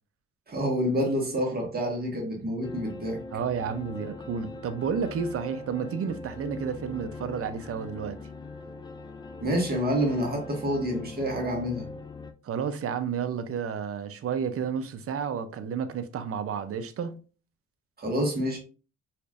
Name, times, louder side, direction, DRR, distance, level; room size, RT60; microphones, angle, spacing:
voice 1, 0.5-3.2 9.4-11.9 18.0-18.6, equal, 30° right, 1.7 m, -28 dB
sound 1, 2.6-12.3, left 3 dB, 15° left, 0.4 m, -41 dB
voice 2, 3.3-8.2 12.4-17.2, right 7 dB, 50° right, 0.6 m, -31 dB
4.3 x 3.0 x 2.5 m
cardioid pair, 90°, 30 cm